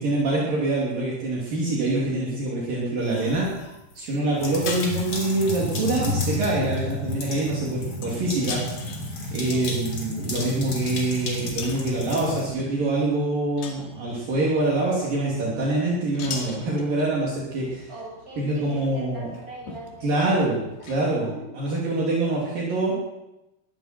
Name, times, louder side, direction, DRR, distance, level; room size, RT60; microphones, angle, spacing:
voice 1, 0.0-3.5 4.0-8.6 9.3-17.9 18.4-19.3 20.0-20.6 20.9-21.3 21.5-23.0, right 2 dB, 60° right, -5 dB, 4.7 m, -25 dB
sound 1, 3.1-3.7 4.4-12.5, left 2 dB, 40° left, 4.2 m, -31 dB
voice 2, 4.2-4.5 9.5-9.7 10.1-10.4 17.9-20.5 21.1-21.5, right 2 dB, 15° right, -4 dB, 7.7 m, -41 dB
sound 2, 4.3-21.2, left 5 dB, 90° left, 4.0 m, -43 dB
20.5 x 15.0 x 4.5 m, 0.92 s
omnidirectional pair, 4.6 m